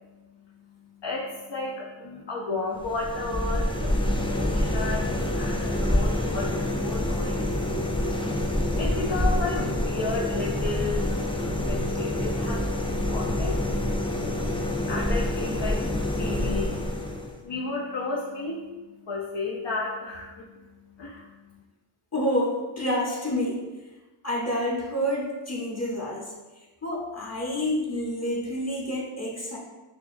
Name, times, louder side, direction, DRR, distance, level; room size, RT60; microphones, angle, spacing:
voice 1, 1.0-8.0 8.6-11.2 11.6-13.7 14.6-17.0 17.4-18.7 19.1-20.6 21.0-21.3, left 3 dB, 65° left, -4 dB, 0.7 m, -33 dB
sound 1, 2.8-17.4, left 1 dB, 10° left, 0.3 m, -27 dB
voice 2, 22.1-23.7 24.2-26.3 26.8-29.6, equal, 30° left, -3 dB, 1.0 m, -28 dB
6.3 x 2.3 x 2.6 m, 1.2 s
wide cardioid pair, 45°, 48 cm